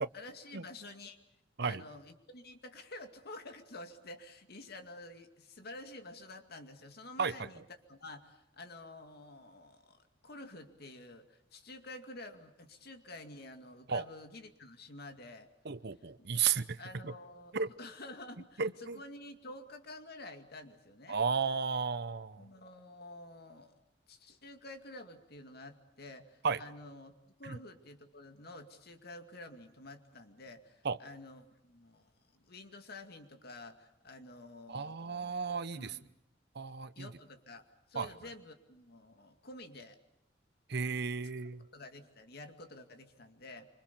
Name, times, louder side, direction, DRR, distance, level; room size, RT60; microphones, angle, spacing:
voice 1, 0.1-1.2 1.6-7.6 7.9-15.5 16.0-16.1 16.3-16.4 16.8-21.2 22.4-23.8 24.1-27.1 27.4-36.1 37.0-40.0 41.7-43.7, left 2 dB, 60° left, 6 dB, 2.3 m, -50 dB
voice 2, 15.6-16.8 17.0-17.1 17.5-17.7 18.6-19.0 21.1-22.4 26.4-26.6 27.4-27.6 30.8-31.0 34.7-35.8 36.5-37.1 37.9-38.1 40.7-41.6, right 5 dB, 60° right, 15 dB, 0.8 m, -33 dB
25.5 x 25.5 x 6.9 m, 0.85 s
head